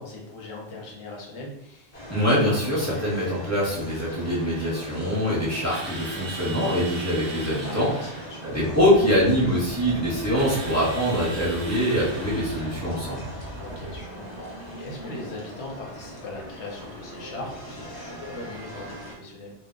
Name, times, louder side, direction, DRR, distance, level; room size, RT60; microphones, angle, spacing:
voice 1, 0.0-2.0 7.6-8.5 13.6-19.5, left 2 dB, 85° left, -1 dB, 1.0 m, -40 dB
sound 1, 1.9-19.1, equal, 45° left, 0.8 m, -40 dB
voice 2, 2.1-13.2, equal, 15° right, -8 dB, 0.7 m, -24 dB
Drill, 5.7-8.4 10.3-12.8, right 3 dB, 45° right, 0.3 m, -39 dB
sound 2, 8.5-14.0, equal, 60° left, 0.3 m, -40 dB
2.2 x 2.1 x 3.6 m, 0.77 s
omnidirectional pair, 1.1 m